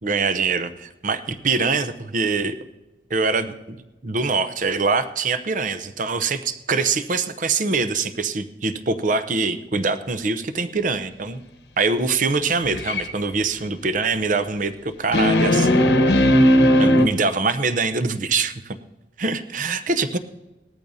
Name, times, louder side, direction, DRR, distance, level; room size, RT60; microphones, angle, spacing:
voice 1, 0.0-2.6 3.1-11.4 11.8-16.0 16.8-18.8 19.2-20.2, right 4 dB, 45° right, 11 dB, 0.7 m, -24 dB
sound 1, 12.6-13.0 15.1-17.1, left 1 dB, 75° left, 1.0 m, -16 dB
19.0 x 13.5 x 2.7 m, 1.0 s
head